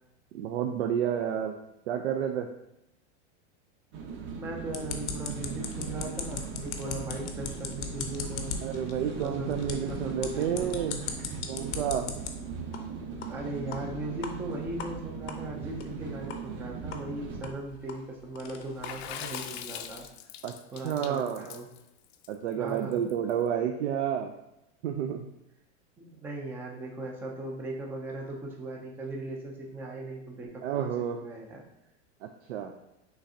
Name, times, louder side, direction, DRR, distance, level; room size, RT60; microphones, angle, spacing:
voice 1, 0.3-1.5 1.9-2.5 8.6-11.0 11.5-12.1 20.4-20.5 20.8-21.4 22.3-24.3 24.8-25.3 30.6-31.2 32.2-32.7, right 9 dB, 85° right, 4 dB, 0.5 m, -30 dB
sound 1, 3.9-17.5, right 5 dB, 35° right, 0.8 m, -39 dB
voice 2, 4.4-8.5 9.2-10.8 13.3-20.1 20.7-21.7 22.6-23.0 26.0-31.6, right 2 dB, 5° right, 1 dB, 0.3 m, -38 dB
sound 2, 4.7-12.3 12.7-12.8 13.2-13.3 13.7-13.8 14.2-14.3 14.8-14.9 15.3-15.4 15.8-15.9 16.3-16.4 16.9-17.0 17.4-20.1, left 6 dB, 90° left, 0.8 m, -39 dB
Water / Splash splatter, 18.8-23.3, left 10 dB, 65° left, 0.5 m, -42 dB
6.1 x 3.3 x 2.7 m, 0.88 s
supercardioid pair, 135°, 35 cm